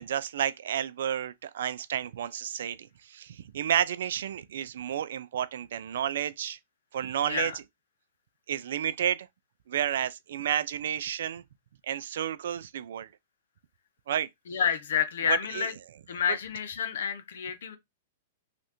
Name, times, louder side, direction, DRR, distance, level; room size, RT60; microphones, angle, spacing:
voice 1, 0.0-6.6 6.9-7.5 8.5-9.3 9.7-11.4 11.9-13.1 14.1-14.3 15.3-15.7, right 10 dB, 70° right, 0.3 m, -31 dB
voice 2, 7.2-7.6 14.5-15.7 16.1-17.8, left 7 dB, 75° left, 0.7 m, -29 dB
3.1 x 2.5 x 2.9 m
hypercardioid pair, 130°, 0 cm